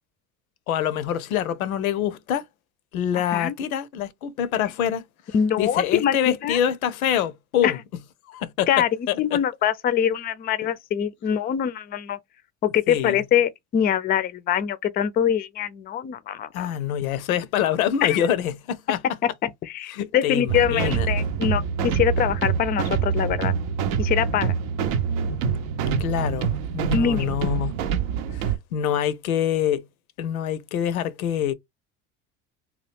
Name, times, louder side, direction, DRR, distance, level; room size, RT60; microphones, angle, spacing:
voice 1, 0.7-2.5 2.9-7.8 8.3-9.4 12.9-13.2 16.5-19.0 19.9-21.1 26.0-27.7 28.3-29.9 30.2-31.5, left 10 dB, 85° left, 0.5 m, -26 dB
voice 2, 5.3-6.6 7.6-7.7 8.7-8.9 9.2-12.2 12.6-16.7 18.0-18.3 19.2-23.5 24.0-24.5 26.9-27.3, left 9 dB, 25° left, 0.4 m, -24 dB
sound 1, 20.5-28.6, right 6 dB, 70° right, 0.6 m, -25 dB
2.8 x 2.3 x 3.3 m
hypercardioid pair, 70°, 41 cm